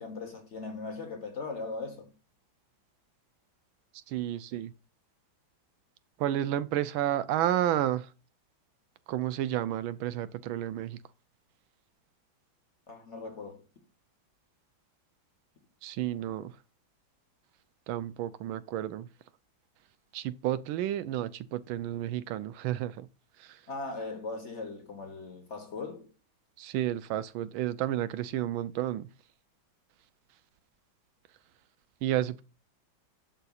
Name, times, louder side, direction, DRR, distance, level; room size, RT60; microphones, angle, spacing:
voice 1, 0.0-2.1 12.9-13.6 23.7-26.1, left 3 dB, 40° left, 1.2 m, -39 dB
voice 2, 3.9-4.7 6.2-8.1 9.1-11.0 15.8-16.6 17.9-19.1 20.1-23.1 23.4-23.6 26.6-29.1 32.0-32.4, right 12 dB, 85° right, 1.4 m, -31 dB
11.5 x 4.2 x 2.4 m
omnidirectional pair, 2.2 m